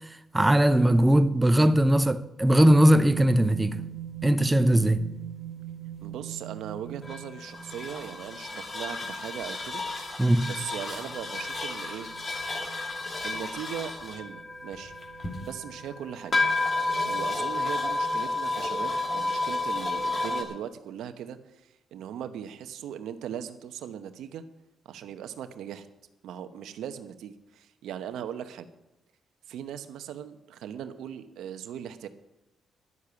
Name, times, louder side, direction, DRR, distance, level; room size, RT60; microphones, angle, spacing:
voice 1, 0.3-3.8 4.2-5.1 10.2-10.5, right 1 dB, 10° right, 0.7 m, -20 dB
sound 1, 2.7-20.4, left 2 dB, 35° left, 2.7 m, -32 dB
voice 2, 6.0-9.8 10.1-12.1 13.2-14.9 15.4-16.3 17.0-21.4 21.9-24.4 24.8-25.9 26.2-28.7 29.5-32.1, right 9 dB, 85° right, 0.9 m, -39 dB
11.0 x 9.8 x 6.9 m
cardioid pair, 95°, 0 cm